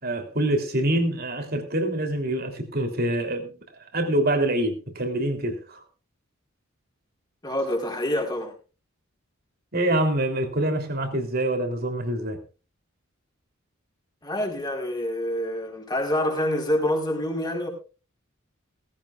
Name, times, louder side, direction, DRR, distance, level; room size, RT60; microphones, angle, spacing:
voice 1, 0.0-3.5 3.9-5.8 9.7-12.4, right 1 dB, 50° right, 3.3 m, -25 dB
voice 2, 7.4-8.5 14.2-17.7, left 1 dB, 20° left, 4.4 m, -26 dB
18.0 x 16.0 x 2.5 m
head